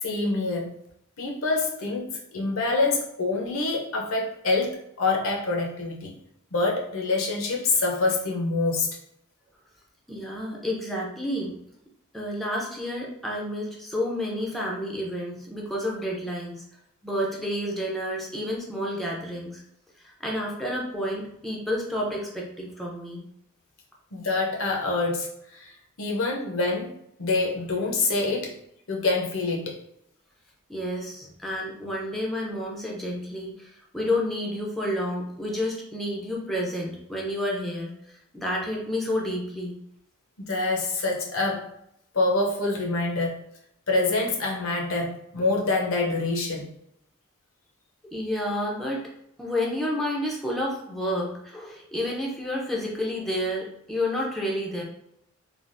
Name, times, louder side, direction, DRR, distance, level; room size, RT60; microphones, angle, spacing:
voice 1, 0.0-0.7 1.2-6.1 6.5-9.0 24.1-26.9 27.2-28.5 28.9-29.7 40.4-41.7 42.1-43.4 43.9-46.6, left 3 dB, 70° left, 0 dB, 0.7 m, -26 dB
voice 2, 10.1-11.5 12.1-16.6 17.0-19.6 20.0-23.3 30.7-39.8 48.1-49.0 49.4-54.8, left 1 dB, ahead, -3 dB, 0.5 m, -30 dB
3.3 x 2.4 x 2.5 m, 0.77 s
head